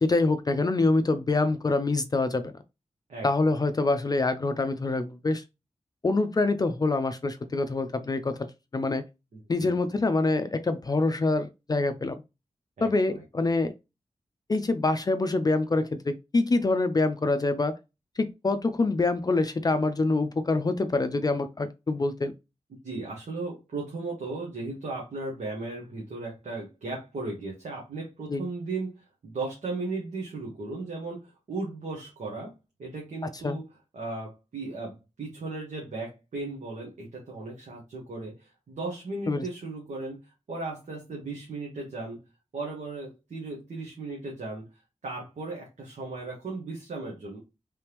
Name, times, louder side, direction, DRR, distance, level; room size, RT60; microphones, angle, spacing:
voice 1, 0.0-2.5 3.2-5.4 6.0-8.5 8.7-9.0 9.5-12.2 12.8-13.7 14.5-17.7 18.2-22.3 28.3-28.4 33.2-33.6 39.3-39.4, left 3 dB, 35° left, 0.4 m, -25 dB
voice 2, 3.1-3.6 9.3-9.7 12.8-13.2 22.8-32.5 32.8-33.7 33.9-42.2 42.5-44.7 45.0-47.4, right 3 dB, 85° right, 1.2 m, -36 dB
3.4 x 3.3 x 2.9 m
wide cardioid pair, 120°, 12 cm